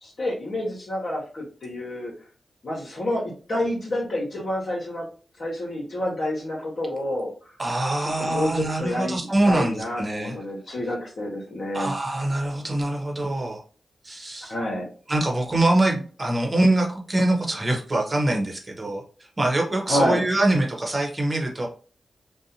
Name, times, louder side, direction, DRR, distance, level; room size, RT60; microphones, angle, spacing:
voice 1, 0.0-2.1 2.6-5.1 5.4-7.3 8.0-12.0 14.5-14.9 19.9-20.2, left 1 dB, 60° left, -5 dB, 0.9 m, -28 dB
voice 2, 7.6-10.4 11.7-13.6 14.0-14.5 15.1-19.0 19.4-21.7, right 1 dB, 30° right, 0 dB, 1.0 m, -24 dB
2.6 x 2.1 x 2.8 m, 0.39 s
cardioid pair, 55°, 0 cm